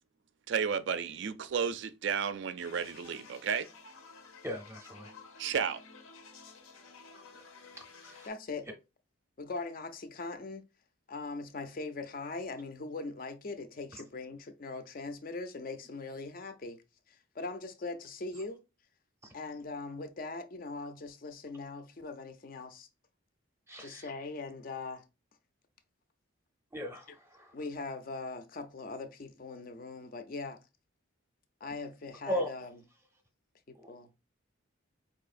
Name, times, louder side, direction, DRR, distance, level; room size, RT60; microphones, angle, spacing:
voice 1, 0.5-3.7 5.4-5.8, right 7 dB, 55° right, 0.4 m, -32 dB
sound 1, 2.6-8.3, left 4 dB, 75° left, 0.7 m, -53 dB
voice 2, 4.4-5.1 7.8-8.3 19.2-19.3 23.7-24.1 26.7-27.5 32.3-32.5 33.7-33.9, equal, 15° right, 0.7 m, -38 dB
voice 3, 8.2-8.7 9.4-10.6 11.1-18.6 19.3-22.9 23.8-25.0 27.5-30.6 31.6-32.7 33.7-34.1, left 3 dB, 40° left, 0.4 m, -41 dB
4.6 x 2.7 x 2.4 m
head